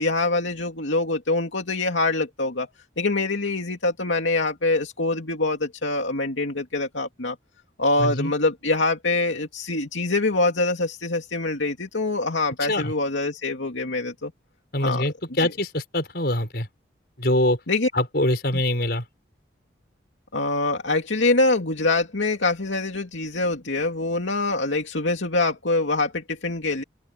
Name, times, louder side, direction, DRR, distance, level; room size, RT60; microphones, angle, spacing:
voice 1, 0.0-2.7 3.0-7.4 7.8-14.3 14.8-15.1 15.4-15.5 17.7-17.9 20.3-26.8, left 2 dB, 85° left, 2.6 m, -24 dB
voice 2, 8.0-8.3 12.6-12.9 14.7-16.7 17.2-17.6 17.9-19.0, left 1 dB, 55° left, 6.6 m, -24 dB
open air
head